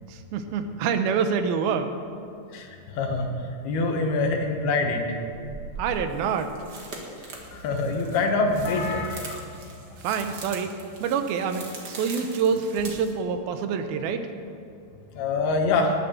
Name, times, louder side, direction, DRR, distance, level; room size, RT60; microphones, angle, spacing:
voice 1, 0.1-1.9 5.8-6.5 10.0-10.7 11.0-14.3, right 6 dB, 80° right, 8 dB, 2.7 m, -26 dB
voice 2, 2.5-3.3 3.6-5.0 7.5-9.4 15.1-15.9, left 3 dB, 85° left, 3 dB, 3.4 m, -25 dB
sound 1, 4.3-4.4 5.3-13.1, right 3 dB, 40° right, 1.5 m, -42 dB
19.5 x 7.3 x 6.7 m, 2.5 s
omnidirectional pair, 4.3 m